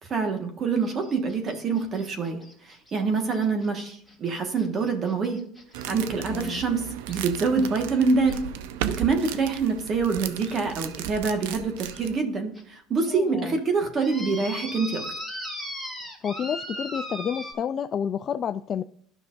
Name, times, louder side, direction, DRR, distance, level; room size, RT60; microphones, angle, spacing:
voice 1, 0.0-5.4 5.9-8.4 8.8-15.0, right 4 dB, 40° right, 5 dB, 1.6 m, -26 dB
sound 1, 0.8-5.9 7.1-7.2 8.2-8.4 9.2-9.3 9.8-9.9 10.4-10.5 11.3-11.4 11.9-12.0 12.5-12.6 13.0-13.1 14.0-17.5, equal, 5° right, 2.5 m, -38 dB
sound 2, 5.7-12.2, right 10 dB, 90° right, 0.6 m, -35 dB
voice 2, 6.3-6.6 13.1-13.6 16.2-18.8, left 8 dB, 40° left, 8 dB, 0.3 m, -30 dB
12.0 x 5.8 x 2.6 m, 0.63 s
supercardioid pair, 110°, 0 cm